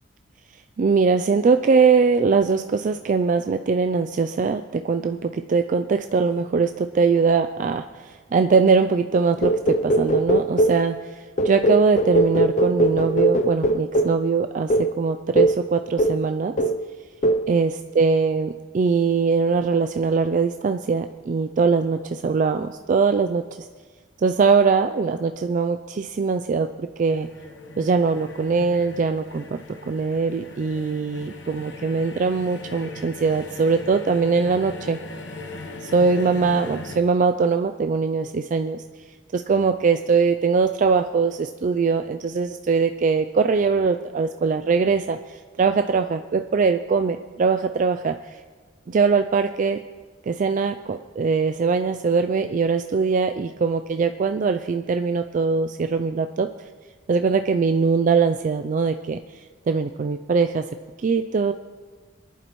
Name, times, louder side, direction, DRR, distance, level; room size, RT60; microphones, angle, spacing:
voice 1, 0.8-16.5 17.5-23.7 24.2-27.3 27.8-29.6 29.9-35.0 35.8-38.8 39.3-48.4 48.9-49.8 50.3-56.5 57.1-60.7 61.0-61.5, right 5 dB, 40° right, 7 dB, 0.3 m, -22 dB
sound 1, 9.4-10.9 11.4-14.2 14.7-14.9 15.4-15.6 16.0-16.3 16.6-16.9 17.2-17.5, right 1 dB, 40° left, 0.6 m, -20 dB
sound 2, 27.1-37.0, left 2 dB, 65° left, 1.1 m, -39 dB
22.0 x 11.0 x 3.1 m, 1.5 s
head